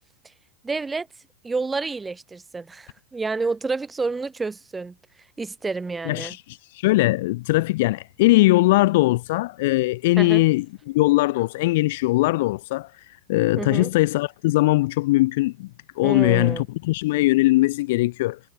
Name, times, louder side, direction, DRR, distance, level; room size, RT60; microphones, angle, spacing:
voice 1, 0.6-1.1 1.4-5.0 5.4-6.4 10.2-10.4 13.6-13.9 16.0-16.6, right 4 dB, 10° right, 7.9 m, -29 dB
voice 2, 6.0-12.9 13.3-15.7 16.0-18.4, left 19 dB, 50° left, 1.8 m, -20 dB
figure-of-eight pair, 90°, 0 cm